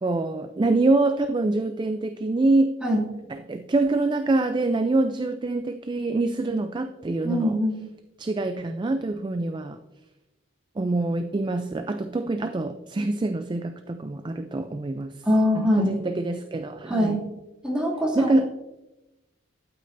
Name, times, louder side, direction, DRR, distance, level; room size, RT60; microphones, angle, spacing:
voice 1, 0.0-2.8 3.3-7.6 8.2-9.8 10.8-15.3 15.6-17.2 18.2-18.6, right 2 dB, 25° right, 8 dB, 0.3 m, -25 dB
voice 2, 7.2-7.8 15.3-15.9 16.9-17.2 17.6-18.3, left 1 dB, 5° right, -5 dB, 2.5 m, -22 dB
12.5 x 8.5 x 2.6 m, 1.0 s
head